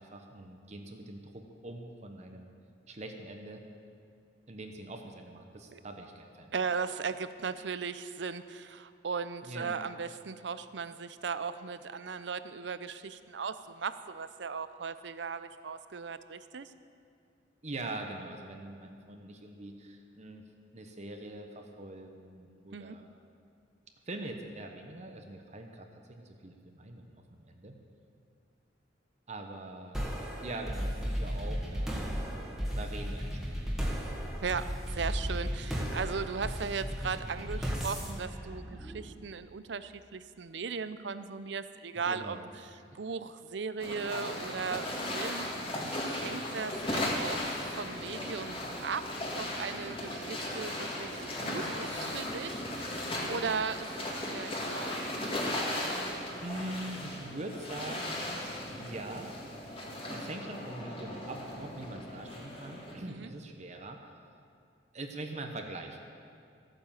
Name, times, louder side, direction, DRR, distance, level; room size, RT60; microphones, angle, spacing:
voice 1, 0.0-2.5 2.9-3.6 4.5-6.5 9.4-9.8 17.6-20.4 20.7-23.1 24.1-27.8 29.3-30.0 30.4-33.5 41.9-42.5 56.4-58.3 58.8-59.3 60.1-64.0 64.9-66.2, right 2 dB, 40° right, 4 dB, 1.0 m, -43 dB
voice 2, 6.5-16.7 22.7-23.0 34.4-42.4 43.0-45.5 46.0-55.0 63.1-63.3, right 5 dB, 70° right, 13 dB, 0.6 m, -37 dB
sound 1, 29.9-39.4, equal, 5° right, 1.8 m, -35 dB
sound 2, 43.8-62.9, left 1 dB, 30° left, 2.0 m, -37 dB
14.0 x 9.0 x 7.4 m, 2.3 s
head